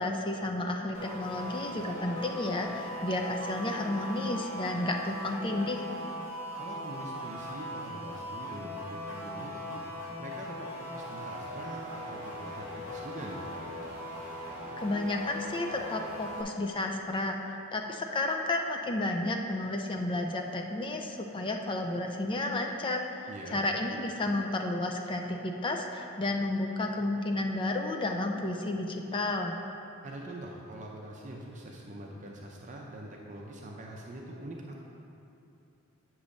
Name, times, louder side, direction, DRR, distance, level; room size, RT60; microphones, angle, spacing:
voice 1, 0.0-5.8 14.8-29.5, left 2 dB, 25° left, 3 dB, 0.4 m, -32 dB
sound 1, 0.9-16.4, equal, 60° left, 1.3 m, -39 dB
voice 2, 6.6-9.8 10.2-13.4 23.3-23.6 30.0-34.8, right 1 dB, 35° right, -2 dB, 0.6 m, -44 dB
8.3 x 3.1 x 6.4 m, 2.8 s
head